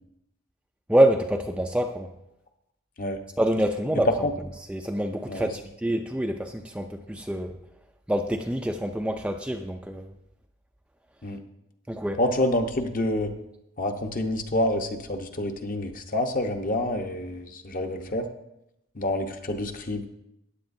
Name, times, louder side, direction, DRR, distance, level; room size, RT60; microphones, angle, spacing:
voice 1, 0.9-2.1 3.4-4.1 4.7-7.5 8.1-10.1 11.9-12.2, right 1 dB, 5° right, 4 dB, 0.4 m, -26 dB
voice 2, 12.2-13.3 13.8-18.3 18.9-20.1, left 1 dB, 40° left, 5 dB, 0.9 m, -27 dB
15.0 x 9.5 x 2.6 m, 0.85 s
head